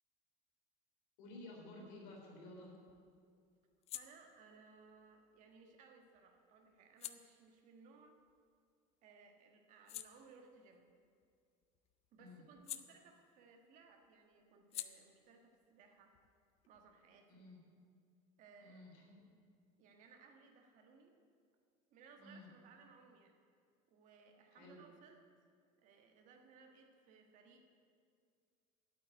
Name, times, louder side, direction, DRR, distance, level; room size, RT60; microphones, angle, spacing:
voice 1, 1.2-2.7 12.2-12.4 17.3-17.6 18.6-19.3 22.2-22.5 24.5-24.8, left 2 dB, 80° left, -1 dB, 3.6 m, -54 dB
sound 1, 2.1-9.0 9.4-13.6 13.9-17.3, left 12 dB, 35° left, 0.4 m, -55 dB
voice 2, 3.9-8.2 9.0-10.8 12.1-16.2 16.7-17.5 18.4-18.9 19.8-21.2 21.9-23.4 23.9-25.2 25.8-27.8, right 5 dB, 45° right, 3 dB, 1.4 m, -62 dB
8.6 x 8.3 x 9.1 m, 2.2 s
cardioid pair, 170°, 18 cm